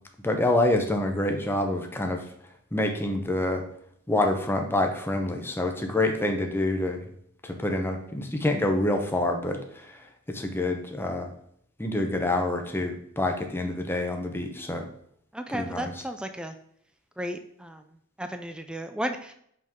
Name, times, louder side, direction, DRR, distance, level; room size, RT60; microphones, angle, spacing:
voice 1, 0.2-2.2 2.7-3.6 4.1-7.0 7.4-11.3 11.8-14.8 15.5-15.9, left 1 dB, 10° left, 4 dB, 0.8 m, -27 dB
voice 2, 15.3-16.5 17.2-17.8 18.2-19.3, equal, 5° right, 7 dB, 0.3 m, -34 dB
5.5 x 5.3 x 3.6 m, 0.69 s
head